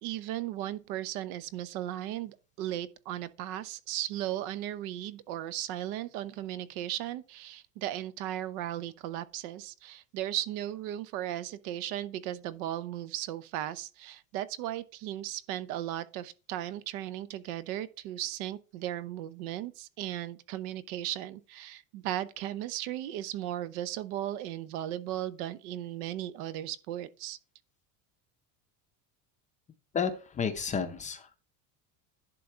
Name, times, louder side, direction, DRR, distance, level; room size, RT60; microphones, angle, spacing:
voice 1, 0.0-27.4, right 13 dB, 75° right, 0.9 m, -36 dB
voice 2, 29.9-31.4, left 6 dB, 15° left, 0.5 m, -32 dB
11.0 x 3.8 x 4.4 m
cardioid pair, 170°, 43 cm